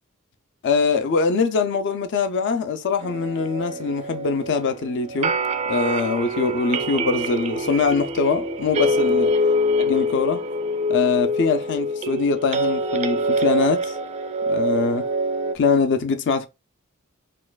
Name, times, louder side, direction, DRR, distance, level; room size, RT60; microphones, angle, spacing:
voice 1, 0.6-5.4 5.7-9.3 9.8-10.4 10.9-13.9 14.5-15.1 15.5-16.5, left 4 dB, 55° left, 0.4 m, -23 dB
sound 1, 3.0-15.5, equal, 30° right, 0.3 m, -25 dB
4.2 x 2.3 x 2.2 m
head